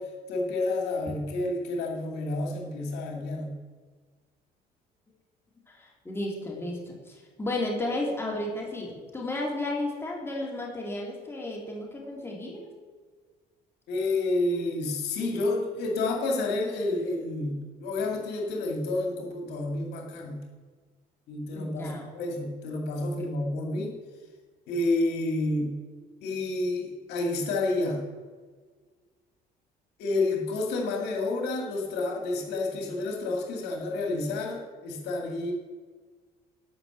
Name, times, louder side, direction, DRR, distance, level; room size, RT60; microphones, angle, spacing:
voice 1, 0.0-3.5 13.9-20.4 21.3-24.0 24.7-25.8 26.2-28.0 30.0-35.5, left 2 dB, 85° left, 1 dB, 2.2 m, -29 dB
voice 2, 5.7-12.6 21.5-22.0, left 2 dB, 15° left, -2 dB, 3.1 m, -33 dB
12.0 x 5.9 x 7.8 m, 1.5 s
cardioid pair, 110°, 17 cm